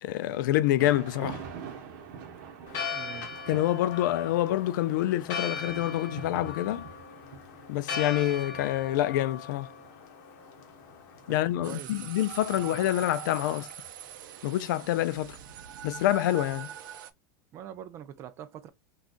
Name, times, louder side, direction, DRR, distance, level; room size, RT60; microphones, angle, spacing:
voice 1, 0.0-1.4 3.5-6.9 7.7-9.7 11.3-13.7 14.4-15.4 15.8-16.7, left 13 dB, 70° left, 0.4 m, -27 dB
Thunder / Rain, 0.8-16.8, right 6 dB, 55° right, 0.9 m, -47 dB
Church bell, 2.7-11.5, left 5 dB, 50° left, 0.8 m, -39 dB
voice 2, 2.9-3.3 11.3-12.1 17.5-18.7, right 10 dB, 25° right, 0.3 m, -44 dB
sound 1, 11.6-17.1, right 10 dB, 80° right, 0.5 m, -43 dB
3.7 x 2.3 x 2.4 m
supercardioid pair, 165°, 11 cm